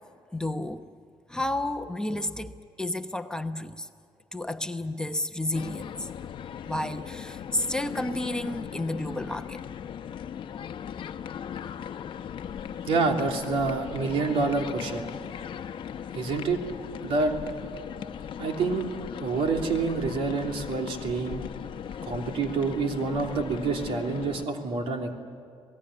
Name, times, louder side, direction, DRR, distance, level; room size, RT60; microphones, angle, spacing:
voice 1, 0.3-0.8 1.3-3.9 4.3-6.1 6.6-9.7, left 1 dB, 10° left, 6 dB, 0.9 m, -31 dB
sound 1, 5.5-24.4, left 8 dB, 60° left, 0.9 m, -38 dB
voice 2, 12.9-15.1 16.1-16.6 17.0-17.3 18.4-18.8 19.2-21.4 22.0-25.1, right 4 dB, 75° right, 3 dB, 3.0 m, -27 dB
27.0 x 18.5 x 9.9 m, 2.2 s
cardioid pair, 115°, 10 cm